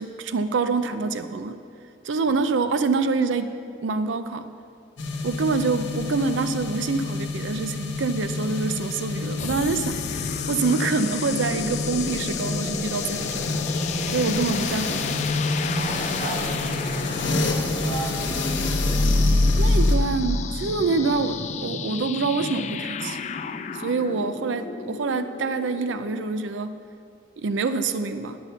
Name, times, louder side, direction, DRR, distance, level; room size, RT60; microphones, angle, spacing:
voice 1, 0.0-1.6 2.0-3.5 3.8-4.5 5.2-13.6 14.1-15.2 19.6-23.2 23.7-26.8 27.4-28.4, right 4 dB, 85° right, 10 dB, 0.5 m, -26 dB
sound 1, 5.0-20.0, left 2 dB, 90° left, 1.2 m, -26 dB
sound 2, 9.4-26.2, left 6 dB, 40° left, 0.3 m, -33 dB
voice 2, 15.7-17.5 17.8-18.4, right 2 dB, 40° right, -6 dB, 3.0 m, -35 dB
10.5 x 6.2 x 6.9 m, 2.5 s
head